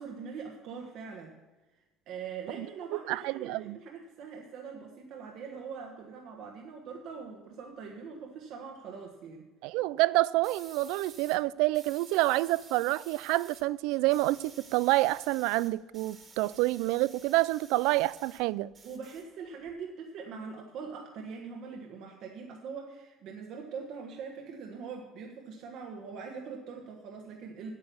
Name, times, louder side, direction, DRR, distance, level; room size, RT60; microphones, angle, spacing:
voice 1, 0.0-1.3 1.7-9.5 18.8-27.7, right 5 dB, 60° right, 1.4 m, -42 dB
voice 2, 2.9-3.8 9.6-18.7, right 19 dB, 80° right, 0.3 m, -28 dB
sound 1, 10.4-11.4 11.7-13.6 13.9-18.4 18.7-19.7, right 4 dB, 30° right, 1.7 m, -53 dB
9.0 x 8.7 x 7.0 m
cardioid pair, 140°, 0 cm